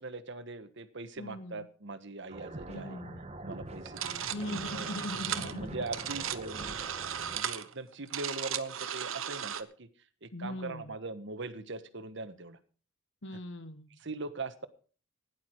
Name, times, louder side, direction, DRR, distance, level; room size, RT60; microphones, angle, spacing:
voice 1, 0.0-3.0 3.4-4.2 4.7-5.0 5.3-6.8 7.3-9.9 10.2-12.6 14.0-14.7, right 3 dB, 60° right, 12 dB, 1.4 m, -41 dB
voice 2, 1.2-1.7 2.7-3.2 4.3-5.7 10.3-10.9 13.2-14.0, left 1 dB, 65° left, 11 dB, 1.3 m, -40 dB
sound 1, 2.3-7.4, right 1 dB, 30° right, 1.5 m, -44 dB
sound 2, 3.9-9.6, right 9 dB, 85° right, 1.1 m, -36 dB
16.5 x 11.0 x 4.7 m, 0.40 s
head